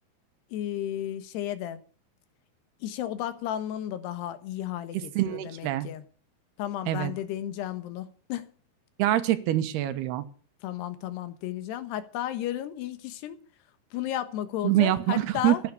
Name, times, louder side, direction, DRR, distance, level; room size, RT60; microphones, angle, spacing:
voice 1, 0.5-1.8 2.8-6.0 6.6-8.5 10.6-13.4 13.9-15.6, left 12 dB, 90° left, 3.4 m, -33 dB
voice 2, 5.2-5.9 6.9-7.1 9.0-10.3 14.6-15.6, right 13 dB, 80° right, 3.2 m, -25 dB
14.5 x 10.0 x 8.3 m
omnidirectional pair, 4.6 m